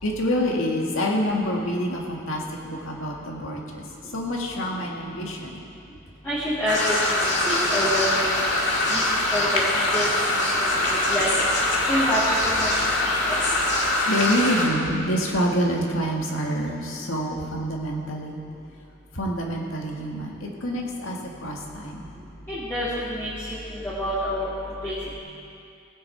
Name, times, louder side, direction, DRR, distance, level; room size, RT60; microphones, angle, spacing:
voice 1, 0.0-5.6 14.1-18.4 19.1-22.1, equal, 75° left, -1 dB, 1.8 m, -27 dB
voice 2, 6.2-8.3 8.9-10.1 10.6-10.7 11.1-11.4 11.8-13.4 22.5-23.6 23.8-25.0, equal, 10° left, -11 dB, 1.9 m, -27 dB
sound 1, 6.7-14.7, left 1 dB, 55° left, 1.9 m, -23 dB
18.0 x 9.4 x 4.5 m, 2.5 s
head